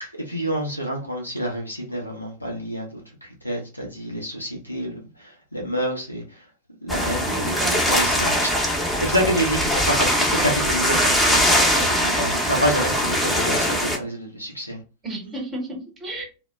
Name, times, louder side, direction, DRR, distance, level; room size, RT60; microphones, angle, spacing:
voice 1, 0.0-6.2 6.8-8.7 9.0-14.8, equal, 90° left, 0.7 m, -28 dB
sound 1, 6.9-14.0, equal, 5° left, 0.6 m, -21 dB
voice 2, 7.2-7.8 15.0-16.3, right 2 dB, 20° right, 0.9 m, -33 dB
2.1 x 2.0 x 3.4 m
figure-of-eight pair, 90°, 0 cm